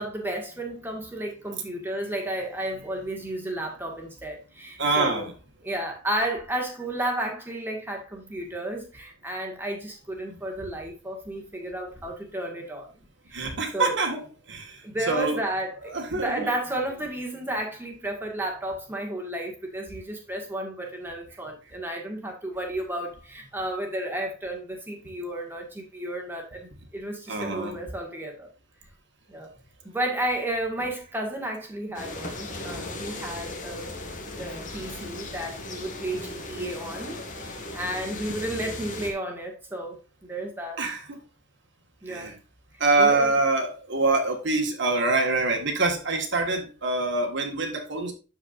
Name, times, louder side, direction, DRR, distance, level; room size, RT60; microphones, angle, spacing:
voice 1, 0.0-5.3 5.6-12.9 13.3-14.0 14.8-28.5 29.3-29.5 29.8-33.9 34.4-40.8 42.0-42.4 43.0-43.3, right 1 dB, 10° right, 1.9 m, -32 dB
voice 2, 4.8-5.3 10.3-10.4 13.3-14.2 14.5-14.8 15.1-15.4 15.9-16.5 27.3-27.8 32.7-33.0 40.8-41.2 42.1-42.3 42.8-48.1, right 3 dB, 55° right, 1.7 m, -25 dB
sound 1, 32.0-39.1, left 2 dB, 35° left, 1.8 m, -37 dB
12.5 x 4.8 x 2.6 m
head